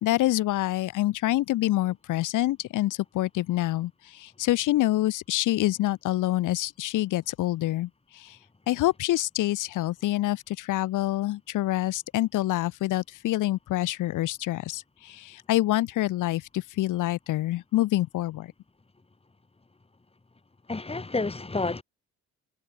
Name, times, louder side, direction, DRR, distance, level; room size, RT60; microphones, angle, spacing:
voice 1, 0.0-8.4 8.7-18.5, left 15 dB, 90° left, 4.4 m, -26 dB
voice 2, 20.7-21.8, left 3 dB, 20° left, 4.8 m, -29 dB
cardioid pair, 90°, 30 cm